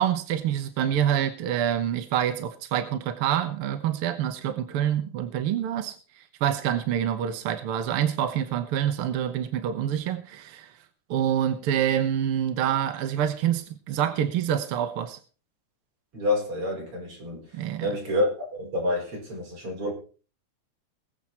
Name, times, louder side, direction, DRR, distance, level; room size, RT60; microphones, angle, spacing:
voice 1, 0.0-10.7 11.1-15.2 17.5-17.9, right 10 dB, 65° right, 1.4 m, -26 dB
voice 2, 16.1-19.9, left 1 dB, 45° right, 6.0 m, -28 dB
21.0 x 7.6 x 4.3 m
omnidirectional pair, 3.6 m